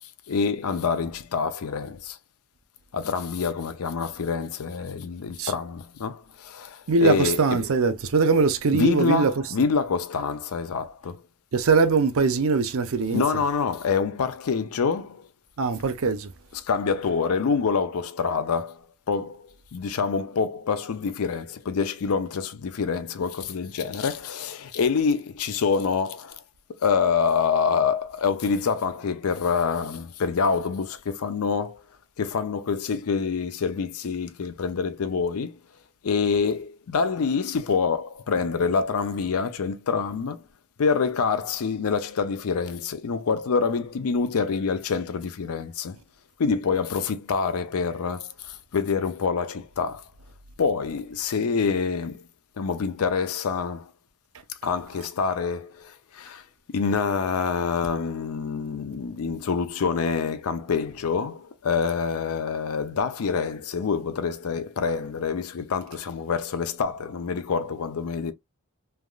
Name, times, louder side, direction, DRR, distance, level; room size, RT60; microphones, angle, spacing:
voice 1, 0.3-2.2 2.9-7.6 8.7-11.2 13.1-15.3 16.6-26.4 26.7-31.8 32.2-35.6 36.0-40.4 40.8-46.0 46.4-50.0 50.6-52.2 52.6-53.9 54.5-68.3, left 5 dB, 70° left, 0.5 m, -26 dB
voice 2, 6.9-9.3 11.5-13.2 15.6-16.3, right 4 dB, 65° right, 0.5 m, -21 dB
3.3 x 2.4 x 2.3 m
head